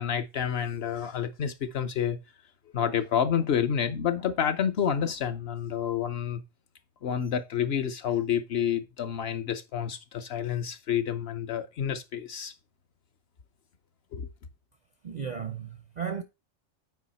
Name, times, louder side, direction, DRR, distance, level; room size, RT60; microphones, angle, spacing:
voice 1, 0.0-2.2 2.7-6.4 7.0-12.5 14.1-14.3, left 8 dB, 55° left, 0.8 m, -29 dB
voice 2, 15.0-16.2, right 7 dB, 55° right, 0.5 m, -34 dB
8.4 x 4.8 x 4.1 m
omnidirectional pair, 1.4 m